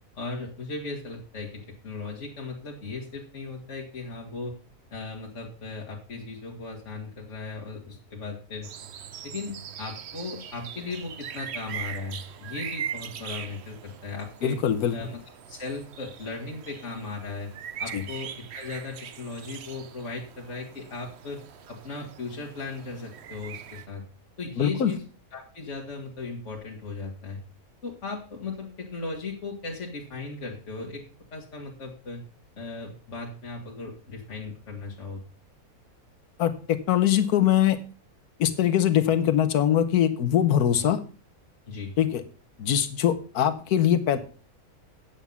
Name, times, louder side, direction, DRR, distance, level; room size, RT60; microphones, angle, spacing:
voice 1, 0.2-4.6 4.9-8.7 9.2-14.6 14.9-15.2 15.5-17.5 17.8-21.4 21.7-24.0 24.4-25.0 25.3-27.4 27.8-31.0 31.3-32.2 32.6-35.2 41.7-41.9, left 3 dB, 55° left, -2 dB, 2.0 m, -37 dB
sound 1, 8.6-23.9, right 9 dB, 55° right, 0.8 m, -41 dB
voice 2, 14.4-14.9 17.9-18.0 24.6-24.9 36.4-37.8 38.4-41.0 42.0-42.2 42.6-44.2, left 10 dB, 85° left, 10 dB, 1.4 m, -22 dB
9.3 x 7.3 x 5.5 m, 0.37 s
omnidirectional pair, 1.6 m